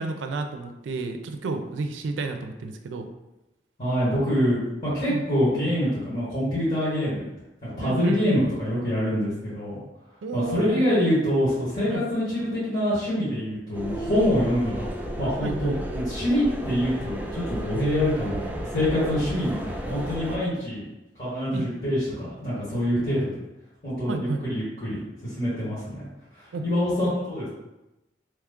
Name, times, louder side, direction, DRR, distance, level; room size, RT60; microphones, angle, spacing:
voice 1, 0.0-3.1 5.1-5.3 7.8-8.2 10.2-10.9 11.9-12.0 15.4-15.8 21.5-21.7 24.1-24.4 26.5-26.6, right 3 dB, 85° right, 6 dB, 0.4 m, -31 dB
voice 2, 3.8-7.3 7.6-9.8 10.3-14.9 15.2-20.8 21.2-23.3 23.8-26.1 26.3-27.5, equal, 40° left, -11 dB, 1.5 m, -25 dB
sound 1, 13.7-20.4, equal, 10° right, 0.3 m, -33 dB
3.0 x 2.3 x 3.6 m, 0.97 s
head